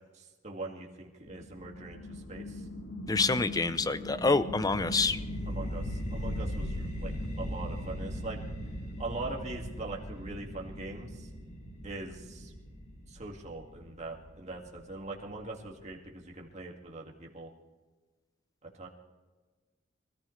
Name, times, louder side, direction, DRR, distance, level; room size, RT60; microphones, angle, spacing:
voice 1, 0.1-2.6 5.5-8.4 9.0-11.3 11.8-12.5 13.1-17.5 18.8-18.9, right 2 dB, 35° right, -1 dB, 2.1 m, -42 dB
sound 1, 1.3-13.3, left 1 dB, 80° left, 1.8 m, -44 dB
voice 2, 3.1-5.2, left 3 dB, 20° left, 14 dB, 0.5 m, -27 dB
sound 2, 4.5-15.5, equal, 35° left, 2.3 m, -39 dB
24.0 x 14.5 x 3.2 m, 1.3 s
head